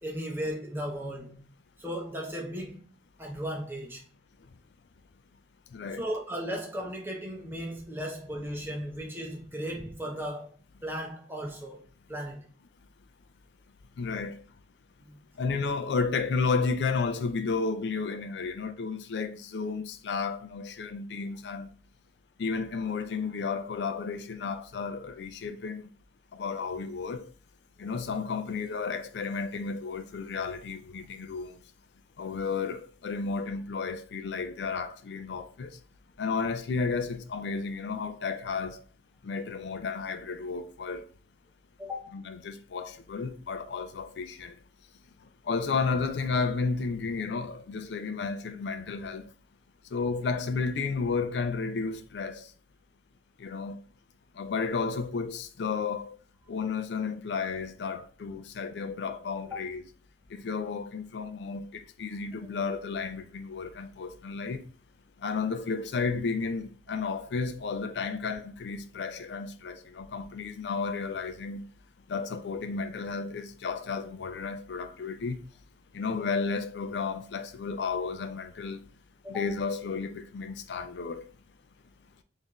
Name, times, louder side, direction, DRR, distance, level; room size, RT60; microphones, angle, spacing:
voice 1, 0.0-1.5 1.8-2.9 3.2-4.1 6.0-10.5 10.8-12.5 15.0-15.2 41.8-42.2 59.5-59.6 79.2-79.5, equal, 10° right, 0.8 m, -36 dB
voice 2, 5.7-6.0 14.0-14.4 15.4-21.7 22.4-25.9 26.3-27.3 27.8-31.5 32.2-35.8 36.2-38.8 39.2-41.1 42.1-44.6 45.5-49.3 49.9-52.5 53.4-53.8 54.4-56.2 56.5-59.8 60.3-64.6 65.2-71.6 72.1-75.4 75.9-78.8 79.3-81.3, left 4 dB, 75° left, 0.4 m, -32 dB
4.0 x 2.6 x 3.0 m
head